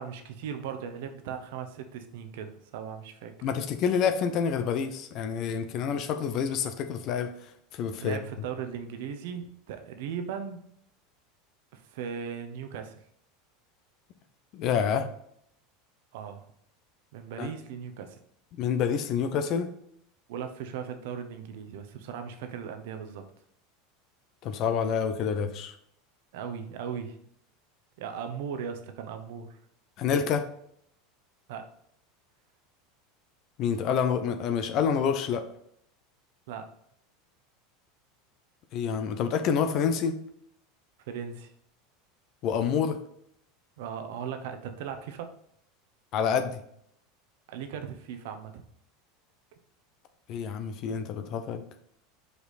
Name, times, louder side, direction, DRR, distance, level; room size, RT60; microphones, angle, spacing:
voice 1, 0.0-3.5 8.0-10.6 11.7-13.0 16.1-16.4 17.1-18.2 20.3-23.2 26.3-27.2 28.0-29.6 31.5-31.7 36.5-36.7 41.1-41.5 43.8-45.3 47.5-48.6, right 7 dB, 65° right, 7 dB, 0.9 m, -38 dB
voice 2, 3.4-7.3 7.7-8.2 14.5-15.0 17.4-17.5 18.6-19.7 24.4-25.7 30.0-30.4 33.6-35.4 38.7-40.2 42.4-43.0 46.1-46.6 50.3-51.6, left 7 dB, 50° left, 8 dB, 0.7 m, -27 dB
5.1 x 4.8 x 4.1 m, 0.71 s
hypercardioid pair, 80°, 0 cm